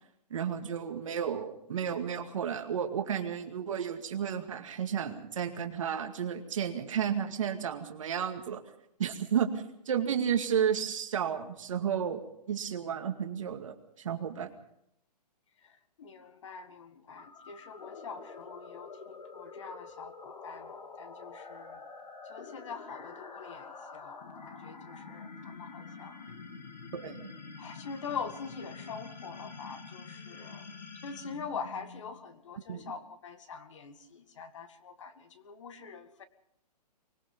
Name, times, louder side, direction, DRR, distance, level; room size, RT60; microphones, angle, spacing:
voice 1, 0.3-8.6 9.0-12.2 12.5-14.5 26.9-27.3 32.7-32.8, right 8 dB, 50° right, 5 dB, 2.2 m, -32 dB
voice 2, 16.0-20.7 21.0-21.8 22.3-24.2 24.5-26.2 27.6-30.7 31.0-36.2, left 5 dB, 45° left, 10 dB, 2.0 m, -44 dB
sound 1, 17.2-32.3, left 4 dB, 85° left, 2.9 m, -47 dB
24.5 x 20.5 x 5.4 m, 0.74 s
hypercardioid pair, 170°, 21 cm